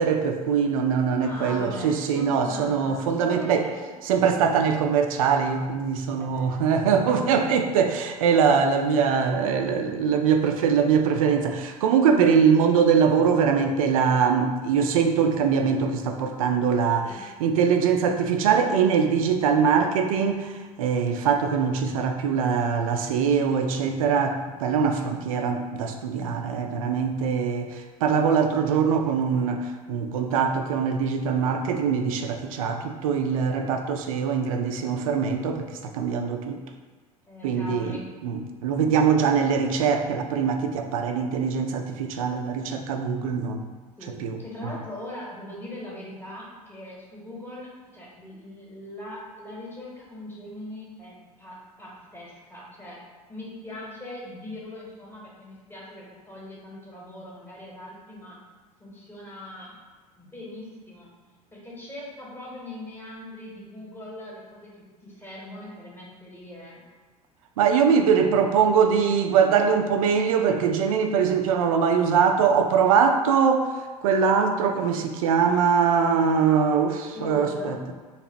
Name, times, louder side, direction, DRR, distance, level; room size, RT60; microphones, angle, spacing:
voice 1, 0.0-3.7 4.0-36.6 37.4-38.0 38.2-43.7 44.2-44.4 67.6-73.7 74.0-77.8, right 6 dB, 60° right, 5 dB, 0.4 m, -22 dB
voice 2, 1.2-3.9 6.1-6.6 17.0-17.3 37.3-38.1 44.0-53.0 53.3-58.4 58.8-59.8 60.2-61.1 61.5-64.7 65.0-66.8 67.9-69.2 77.1-77.8, left 1 dB, 10° left, -4 dB, 0.9 m, -41 dB
3.2 x 2.9 x 2.9 m, 1.4 s
figure-of-eight pair, 75°, 20 cm